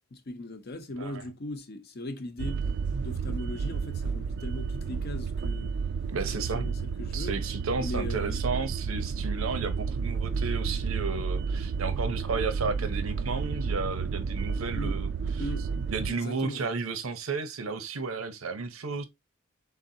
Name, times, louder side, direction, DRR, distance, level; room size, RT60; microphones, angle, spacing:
voice 1, 0.1-2.6 3.0-5.8 6.4-7.3 7.8-8.4 14.7-15.0 15.4-15.7 16.1-16.6, left 1 dB, 50° left, 0.7 m, -39 dB
sound 1, 2.4-16.1, right 5 dB, 55° right, 0.3 m, -31 dB
voice 2, 6.1-6.7 7.1-15.1 15.9-19.0, right 4 dB, 85° right, 0.7 m, -33 dB
4.0 x 3.6 x 2.7 m
head